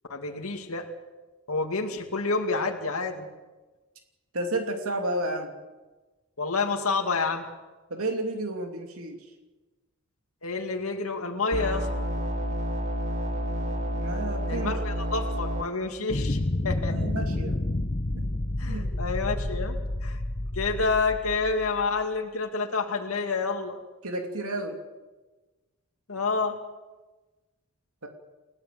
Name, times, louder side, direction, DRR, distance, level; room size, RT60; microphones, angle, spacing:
voice 1, 0.1-0.9 1.5-3.3 6.4-7.5 10.4-11.9 14.5-16.4 16.6-17.0 18.6-19.8 20.0-20.2 20.5-23.8 26.1-26.6, left 4 dB, 80° left, 3 dB, 2.3 m, -28 dB
voice 2, 4.3-5.5 7.9-9.2 13.9-14.7 16.6-17.6 18.1-18.2 18.7-18.9 20.4-20.5 24.0-24.8 28.0-28.1, right 1 dB, 85° right, 4 dB, 2.8 m, -32 dB
sound 1, 11.5-15.6, equal, 35° right, 2.3 m, -29 dB
sound 2, 16.1-21.8, left 1 dB, 35° left, 0.8 m, -29 dB
29.5 x 16.0 x 7.7 m, 1.2 s
head